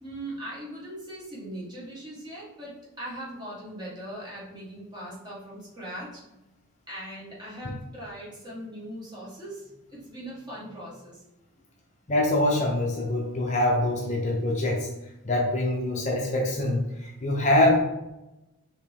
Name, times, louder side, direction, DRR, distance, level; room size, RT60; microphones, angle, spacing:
voice 1, 0.0-6.5 6.9-11.2, right 1 dB, 20° right, -7 dB, 1.5 m, -40 dB
voice 2, 12.1-14.9 15.2-17.8, left 1 dB, 35° left, -1 dB, 0.6 m, -24 dB
4.7 x 3.0 x 3.5 m, 0.94 s
head